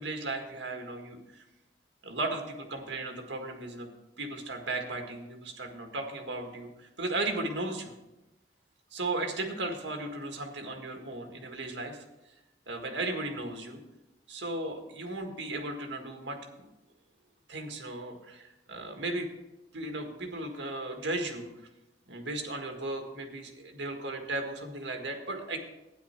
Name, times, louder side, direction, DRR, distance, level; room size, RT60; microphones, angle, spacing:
voice 1, 0.0-1.4 2.0-3.9 4.2-7.9 8.9-12.0 12.7-13.8 14.3-16.7 17.5-19.3 19.7-21.5 22.1-25.6, right 2 dB, 85° right, 3 dB, 1.8 m, -36 dB
12.5 x 9.7 x 4.4 m, 0.98 s
head